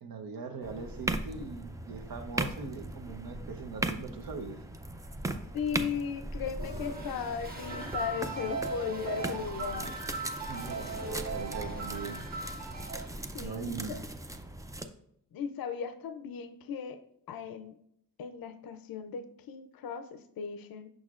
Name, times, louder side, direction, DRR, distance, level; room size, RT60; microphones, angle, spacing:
voice 1, 0.0-4.6 10.5-12.2 13.4-14.0, right 5 dB, 80° right, 5 dB, 0.8 m, -41 dB
sound 1, 0.6-14.9, right 2 dB, 10° right, 0.3 m, -39 dB
voice 2, 5.5-9.9 13.3-14.0 15.3-17.0 17.3-17.7 18.2-20.9, left 6 dB, 80° left, 9 dB, 0.5 m, -37 dB
Toilet flush, 6.5-13.8, equal, 25° right, 1.0 m, -48 dB
sound 2, 7.7-13.1, right 3 dB, 55° right, 0.9 m, -38 dB
6.3 x 6.2 x 2.4 m, 0.73 s
wide cardioid pair, 130°, 35 cm